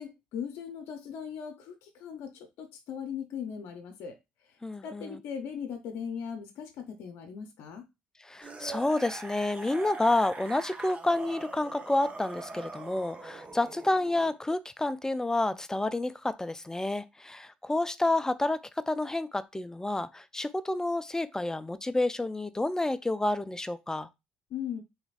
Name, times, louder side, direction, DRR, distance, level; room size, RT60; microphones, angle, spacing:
voice 1, 0.0-4.2 4.8-7.9 24.5-24.8, left 7 dB, 65° left, 0.6 m, -39 dB
voice 2, 4.6-5.2 8.2-24.1, left 2 dB, 15° left, 0.4 m, -29 dB
sound 1, 8.4-14.4 15.5-15.6, right 3 dB, 30° right, 0.8 m, -43 dB
3.4 x 3.0 x 2.5 m
hypercardioid pair, 55°, 5 cm